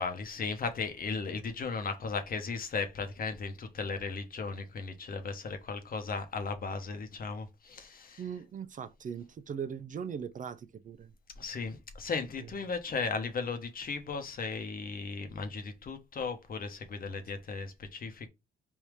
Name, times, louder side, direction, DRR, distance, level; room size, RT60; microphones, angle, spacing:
voice 1, 0.0-8.2 11.4-18.3, left 4 dB, 45° left, 1.0 m, -36 dB
voice 2, 8.2-11.1, right 7 dB, 40° right, 0.5 m, -39 dB
3.5 x 2.7 x 4.7 m
cardioid pair, 90°, 20 cm